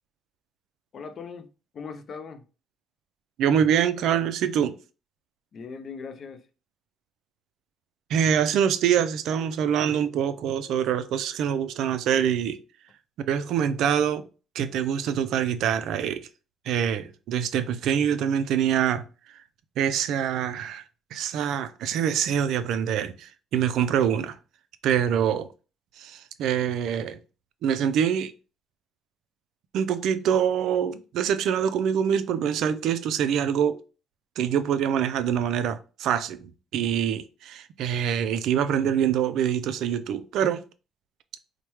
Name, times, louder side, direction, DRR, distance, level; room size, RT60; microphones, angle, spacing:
voice 1, 0.9-1.5 1.7-2.4 5.5-6.4, left 5 dB, 50° left, 0.5 m, -39 dB
voice 2, 3.4-4.8 8.1-12.6 13.2-14.2 14.5-16.3 16.7-19.0 19.8-20.8 21.1-24.4 24.8-25.5 26.0-27.2 27.6-28.3 29.7-33.8 34.4-40.6, right 8 dB, 80° right, 0.3 m, -25 dB
4.4 x 2.1 x 3.0 m
cardioid pair, 100°, 0 cm